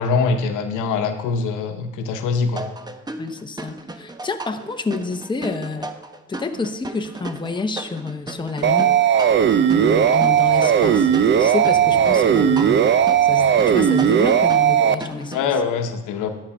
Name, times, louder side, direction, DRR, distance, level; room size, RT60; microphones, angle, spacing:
voice 1, 0.0-2.7 15.3-16.3, left 4 dB, 90° left, 6 dB, 1.0 m, -23 dB
sound 1, 2.6-15.6, right 2 dB, 15° right, 0.7 m, -36 dB
voice 2, 3.2-5.9 6.3-9.0 9.7-11.1 11.4-12.9 13.2-15.5, left 4 dB, 15° left, 6 dB, 0.8 m, -28 dB
sound 2, 8.6-14.9, right 8 dB, 40° right, 0.5 m, -16 dB
sound 3, 9.5-14.7, right 2 dB, 90° right, 1.6 m, -44 dB
12.0 x 5.5 x 5.7 m, 1.2 s
cardioid pair, 90°, 30 cm